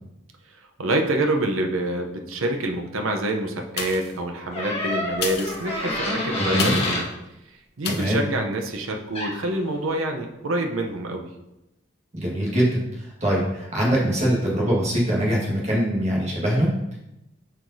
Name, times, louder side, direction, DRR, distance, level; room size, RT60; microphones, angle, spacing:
voice 1, 0.8-7.0 7.8-11.3, right 1 dB, 90° right, 4 dB, 0.7 m, -26 dB
sound 1, 3.7-4.3 5.1-7.0 7.8-8.2 8.7-8.8, left 6 dB, 50° left, 0.6 m, -32 dB
sound 2, 4.5-7.1 9.1-9.4, left 1 dB, 30° left, 1.2 m, -28 dB
voice 2, 6.4-6.7 7.9-8.2 12.1-17.0, equal, 35° right, -4 dB, 1.6 m, -23 dB
7.6 x 4.8 x 2.7 m, 0.91 s
head